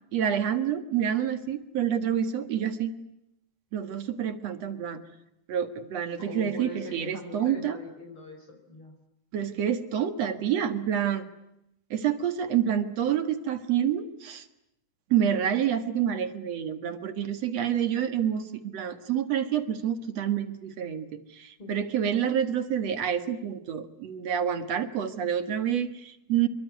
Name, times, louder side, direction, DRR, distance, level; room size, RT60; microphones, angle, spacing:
voice 1, 0.1-2.9 3.7-5.0 5.5-7.8 9.3-11.3 11.9-14.5 15.1-26.5, right 9 dB, 55° right, 10 dB, 2.1 m, -28 dB
voice 2, 6.2-8.9 21.6-21.8, left 2 dB, 30° left, 3 dB, 5.2 m, -41 dB
26.5 x 23.0 x 9.6 m, 0.84 s
omnidirectional pair, 4.6 m